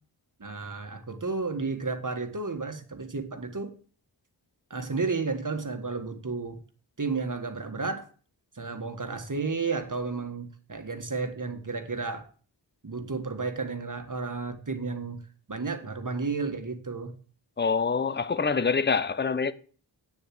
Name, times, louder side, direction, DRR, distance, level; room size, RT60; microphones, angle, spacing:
voice 1, 0.4-3.7 4.7-6.6 7.0-8.1 8.5-12.3 12.8-15.2 15.5-17.1, right 4 dB, 45° right, 1.6 m, -32 dB
voice 2, 17.6-19.5, left 5 dB, 25° left, 0.7 m, -25 dB
9.0 x 7.0 x 7.7 m
wide cardioid pair, 70°, 44 cm